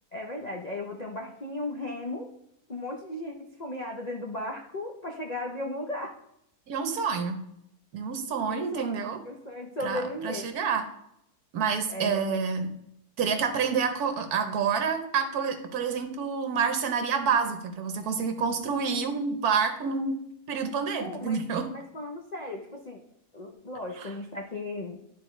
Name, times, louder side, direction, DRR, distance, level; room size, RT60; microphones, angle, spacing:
voice 1, 0.1-2.3 2.7-6.1 8.4-10.5 11.9-12.4 21.0-23.0 23.3-25.0, left 1 dB, 45° left, 0 dB, 0.5 m, -36 dB
voice 2, 6.7-7.4 7.9-9.2 9.8-10.8 11.5-12.7 13.2-20.1 20.5-21.7 24.0-24.1, right 6 dB, 70° right, 7 dB, 1.3 m, -28 dB
11.5 x 4.0 x 3.2 m, 0.78 s
omnidirectional pair, 1.7 m